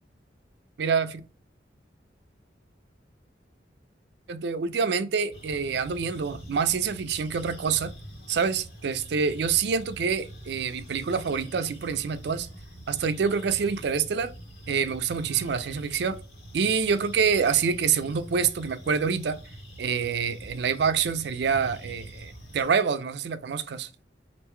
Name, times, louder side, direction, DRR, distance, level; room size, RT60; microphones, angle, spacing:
voice 1, 0.8-1.2 4.3-7.9 8.3-12.5 12.9-14.3 14.7-16.2 16.5-19.4 19.8-23.9, right 6 dB, 60° right, 0.4 m, -26 dB
sound 1, 5.3-22.7, equal, 60° left, 1.8 m, -45 dB
3.6 x 2.5 x 4.4 m
head